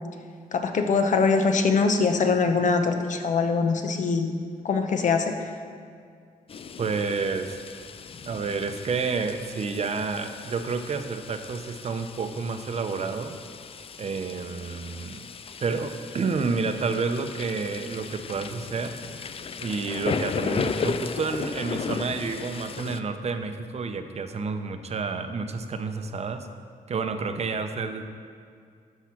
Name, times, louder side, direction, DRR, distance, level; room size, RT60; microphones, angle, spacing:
voice 1, 0.5-4.3 4.6-5.5, left 4 dB, 55° left, 6 dB, 0.9 m, -23 dB
sound 1, 6.5-23.0, left 5 dB, 40° left, 0.4 m, -36 dB
voice 2, 6.8-7.6 8.3-13.4 14.0-15.3 15.6-18.9 19.6-26.5 26.9-28.0, right 4 dB, 45° right, 7 dB, 0.7 m, -29 dB
12.0 x 4.9 x 5.9 m, 2.2 s
cardioid pair, 110°, 15 cm